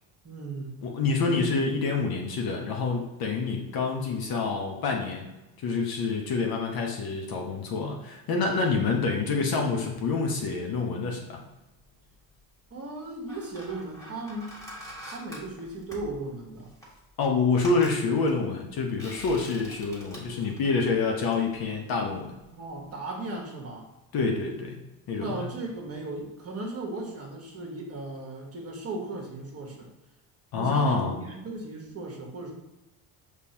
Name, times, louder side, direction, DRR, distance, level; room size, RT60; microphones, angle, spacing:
voice 1, 0.2-0.8 12.7-14.6 15.1-16.7 22.5-23.9 25.2-29.9 30.5-32.5, right 2 dB, 30° right, 0 dB, 1.4 m, -36 dB
voice 2, 0.8-5.3 5.6-11.4 17.2-22.4 24.1-25.3 30.5-31.2, left 4 dB, 50° left, 1 dB, 0.9 m, -27 dB
sound 1, 11.8-12.4 13.0-22.4 22.7-22.9, equal, 5° left, 1.5 m, -46 dB
5.2 x 3.3 x 2.9 m, 1.0 s
supercardioid pair, 85°, 46 cm